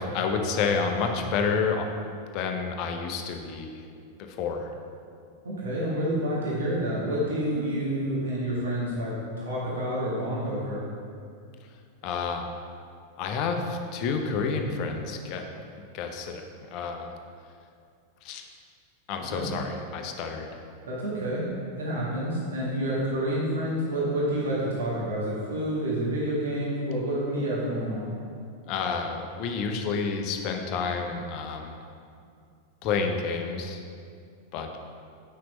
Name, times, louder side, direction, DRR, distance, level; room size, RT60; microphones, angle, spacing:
voice 1, 0.0-1.9 2.3-3.7 4.4-4.7 12.0-12.5 13.2-15.4 15.9-16.4 16.7-17.1 18.2-18.4 19.1-20.5 28.7-31.7 32.8-33.8 34.5-34.7, left 5 dB, 40° left, 4 dB, 0.7 m, -29 dB
voice 2, 5.4-10.8 19.1-19.5 20.9-28.1, right 1 dB, 65° right, -6 dB, 1.5 m, -29 dB
8.4 x 5.9 x 3.2 m, 2.4 s
figure-of-eight pair, 90°, 0 cm